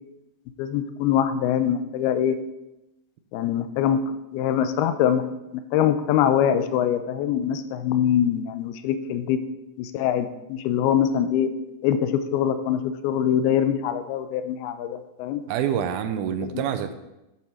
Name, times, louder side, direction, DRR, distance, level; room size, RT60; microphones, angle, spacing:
voice 1, 0.6-2.4 3.3-4.0 4.3-5.2 5.5-9.4 9.8-11.5 11.8-15.4 16.4-16.6, left 9 dB, 90° left, 10 dB, 2.6 m, -23 dB
voice 2, 15.5-16.9, right 9 dB, 85° right, 9 dB, 2.5 m, -26 dB
9.1 x 7.4 x 4.3 m, 0.95 s
omnidirectional pair, 4.3 m